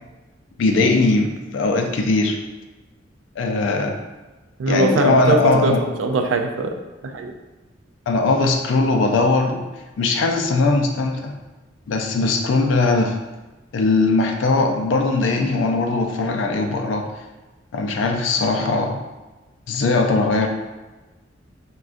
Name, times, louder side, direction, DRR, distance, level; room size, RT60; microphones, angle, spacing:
voice 1, 0.6-2.4 3.4-4.0 4.7-5.8 8.1-9.6 10.0-11.3 11.9-13.2 13.7-17.1 17.7-19.0 19.7-20.5, left 3 dB, 70° left, 3 dB, 0.4 m, -19 dB
voice 2, 4.6-6.8 7.1-7.3, right 3 dB, 80° right, 5 dB, 0.3 m, -21 dB
3.6 x 2.2 x 2.4 m, 1.2 s
head